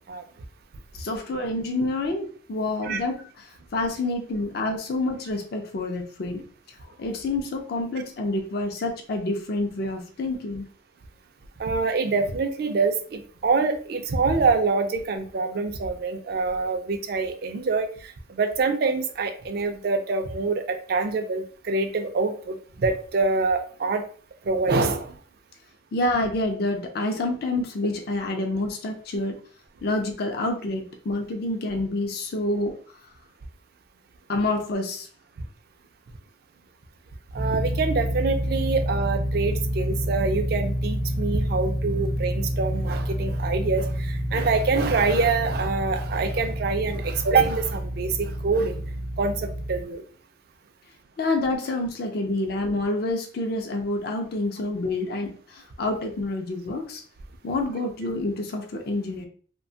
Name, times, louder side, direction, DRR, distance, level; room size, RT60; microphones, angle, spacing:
voice 1, 1.0-6.5 6.8-10.7 25.9-29.4 29.8-33.0 34.3-35.1 51.2-57.0 57.4-59.3, left 2 dB, 55° left, 3 dB, 0.4 m, -28 dB
voice 2, 11.6-24.0 24.5-25.1 37.3-48.8 49.2-50.0, right 4 dB, 55° right, 7 dB, 0.3 m, -25 dB
sound 1, 37.3-49.8, equal, 75° right, 0.8 m, -28 dB
2.7 x 2.2 x 2.6 m, 0.43 s
head